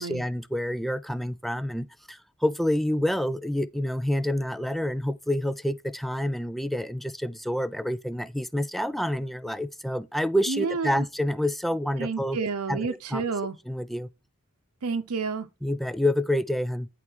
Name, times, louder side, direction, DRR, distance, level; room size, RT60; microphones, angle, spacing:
voice 1, 0.0-12.4 12.7-13.2 13.7-14.1 15.6-16.9, left 1 dB, ahead, 0.3 m, -28 dB
voice 2, 10.5-11.0 12.0-13.6 14.8-15.5, right 5 dB, 85° right, 0.7 m, -30 dB
9.8 x 4.3 x 4.6 m
head